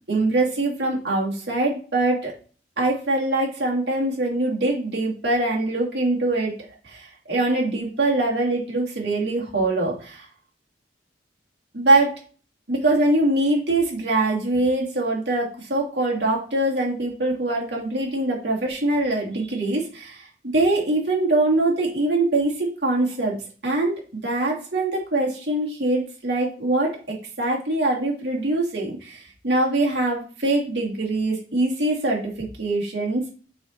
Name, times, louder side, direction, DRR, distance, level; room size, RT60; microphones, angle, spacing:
voice 1, 0.1-2.3 2.8-6.5 6.8-10.2 11.7-12.2 12.7-20.3 20.5-23.4 23.6-23.9 24.2-33.3, right 2 dB, 70° right, -3 dB, 2.9 m, -23 dB
7.0 x 4.7 x 4.6 m, 0.39 s
head